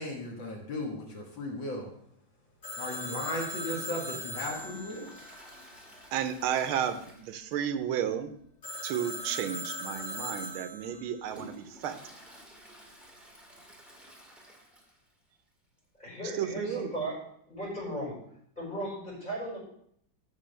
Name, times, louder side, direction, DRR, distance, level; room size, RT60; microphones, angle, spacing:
voice 1, 0.0-1.9 2.8-5.1, left 1 dB, 65° left, 0 dB, 2.3 m, -36 dB
Telephone, 2.6-6.3 8.6-11.2, left 1 dB, 40° left, 3.9 m, -40 dB
Toilet flush, 4.4-7.9 8.1-8.2 8.7-8.8 9.6-9.7 10.3-15.2 15.5-15.6 15.8-15.9 16.9-17.0, right 1 dB, ahead, 1.7 m, -52 dB
voice 2, 6.1-8.3 8.8-12.0 16.4-16.9, right 9 dB, 85° right, 9 dB, 1.5 m, -32 dB
voice 3, 16.0-17.2 17.5-18.1 18.5-19.6, right 1 dB, 20° left, -4 dB, 5.0 m, -36 dB
14.5 x 6.2 x 3.3 m, 0.68 s
omnidirectional pair, 2.3 m